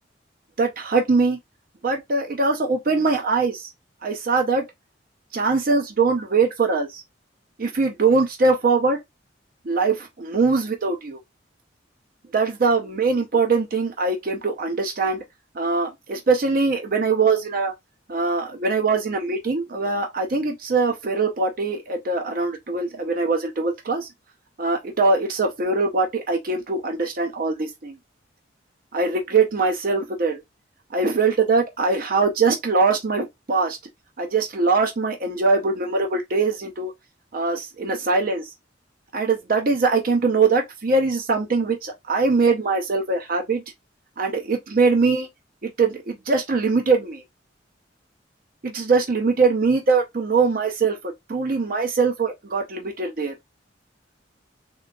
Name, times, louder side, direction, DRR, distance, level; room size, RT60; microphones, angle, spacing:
voice 1, 0.6-1.4 1.8-3.7 4.0-4.6 5.3-7.0 7.6-9.0 9.7-11.2 12.3-15.2 15.6-17.7 18.1-24.1 24.6-28.0 28.9-30.4 30.9-33.8 34.2-36.9 37.3-38.5 39.1-43.6 44.2-45.3 45.6-47.2 48.6-53.3, right 4 dB, 50° right, 0.6 m, -22 dB
3.7 x 2.8 x 2.3 m
head